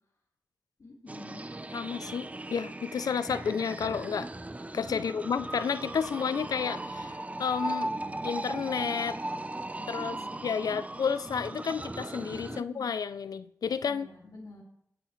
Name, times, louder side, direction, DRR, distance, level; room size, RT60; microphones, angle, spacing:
voice 1, 0.8-1.5 4.8-5.3 9.8-10.8 12.2-12.9 13.9-14.6, left 2 dB, 65° left, -4 dB, 2.3 m, -47 dB
sound 1, 1.1-12.6, right 2 dB, 20° right, 0.5 m, -38 dB
voice 2, 1.7-4.3 4.7-7.9 8.2-9.2 9.9-10.2 10.4-14.1, left 6 dB, 85° left, 14 dB, 0.4 m, -31 dB
18.0 x 7.8 x 3.2 m, 0.74 s
cardioid pair, 50°, 6 cm